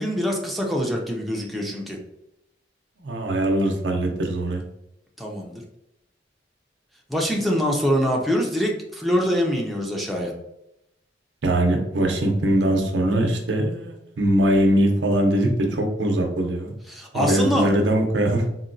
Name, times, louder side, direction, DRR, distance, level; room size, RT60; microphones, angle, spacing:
voice 1, 0.0-2.0 5.2-5.6 7.1-10.3 16.9-17.7, equal, ahead, -1 dB, 0.4 m, -24 dB
voice 2, 3.0-4.6 11.4-16.7 17.1-18.4, right 1 dB, 85° right, 2 dB, 0.6 m, -21 dB
3.9 x 2.2 x 2.5 m, 0.84 s
head